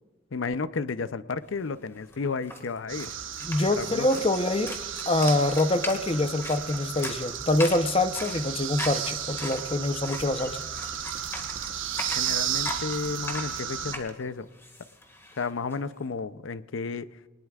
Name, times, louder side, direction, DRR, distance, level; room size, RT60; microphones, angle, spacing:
voice 1, 0.3-3.1 3.7-4.2 12.2-14.5 15.4-17.1, left 4 dB, 85° left, 14 dB, 0.6 m, -32 dB
sound 1, 1.6-1.7 1.9-15.8, left 1 dB, 15° left, 1.9 m, -40 dB
sound 2, 2.9-14.0, right 9 dB, 80° right, 1.1 m, -34 dB
voice 2, 3.4-4.8 5.1-10.6, left 2 dB, 30° left, 9 dB, 0.8 m, -25 dB
22.5 x 19.5 x 2.4 m, 1.2 s
head